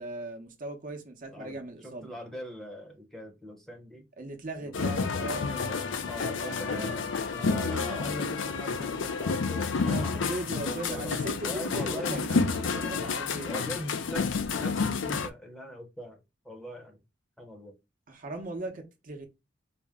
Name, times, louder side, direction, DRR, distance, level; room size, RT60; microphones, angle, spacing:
voice 1, 0.0-2.1 4.2-5.9 6.2-7.1 7.4-8.0 9.8-13.5 18.1-19.3, right 2 dB, 45° right, 0.8 m, -39 dB
voice 2, 1.3-4.0 4.6-5.2 6.1-11.2 11.4-12.2 13.5-16.2 16.4-17.0 17.4-17.7, equal, ahead, 0.7 m, -41 dB
sound 1, 4.7-15.3, left 4 dB, 80° left, 0.5 m, -30 dB
4.2 x 2.1 x 3.5 m
head